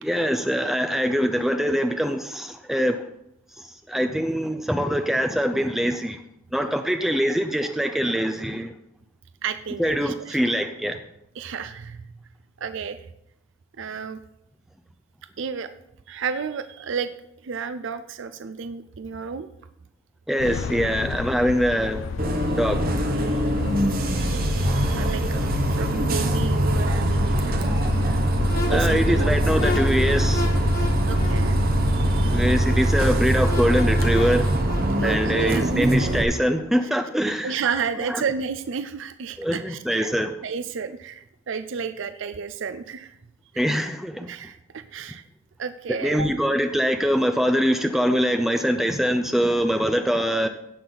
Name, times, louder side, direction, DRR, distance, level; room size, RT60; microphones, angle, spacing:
voice 1, 0.0-3.0 3.9-6.2 6.5-8.7 9.8-11.0 20.3-22.0 22.6-22.8 28.7-30.5 32.3-34.5 35.0-37.5 39.4-40.3 43.6-44.3 46.0-50.5, equal, ahead, 6 dB, 0.5 m, -23 dB
voice 2, 9.4-10.4 11.3-12.1 12.6-13.1 13.8-14.2 15.4-15.7 16.1-17.1 17.4-19.5 23.1-23.5 24.3-27.8 28.7-29.5 31.0-32.4 35.0-35.7 36.8-36.9 37.4-40.1 40.4-43.2 43.5-43.7 44.3-45.2 45.6-46.3, right 6 dB, 65° right, 10 dB, 0.5 m, -32 dB
sound 1, 20.4-32.6, left 6 dB, 65° left, 0.4 m, -32 dB
Bus, 22.2-36.2, right 1 dB, 50° right, 1.0 m, -22 dB
sound 2, 28.4-35.0, left 2 dB, 50° left, 1.6 m, -34 dB
16.5 x 5.9 x 4.0 m, 0.82 s
head